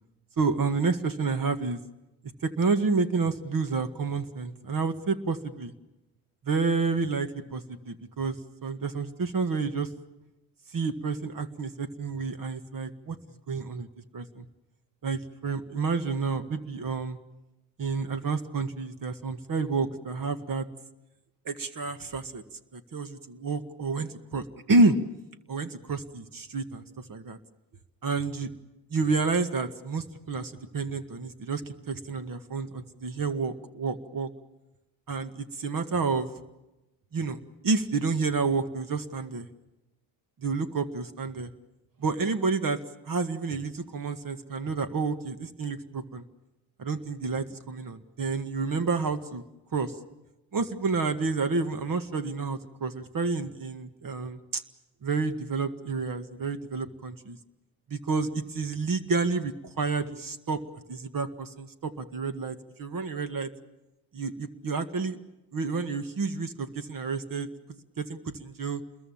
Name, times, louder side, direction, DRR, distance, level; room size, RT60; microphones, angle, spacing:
voice 1, 0.4-1.8 2.4-5.7 6.4-9.9 10.7-13.2 13.5-13.9 14.1-14.5 15.0-17.2 17.8-20.7 21.5-22.4 22.7-25.0 25.5-27.4 28.0-28.5 28.9-34.3 35.1-36.3 37.1-37.4 37.6-39.5 40.4-41.5 42.0-42.8 43.1-46.3 46.8-49.4 49.7-49.9 50.5-54.6 55.0-57.4 57.9-60.6 60.9-63.5 64.1-65.2 65.5-67.5 68.0-68.8, right 4 dB, 45° right, 10 dB, 2.0 m, -29 dB
28.5 x 22.0 x 7.3 m, 1.0 s
hypercardioid pair, 60°, 47 cm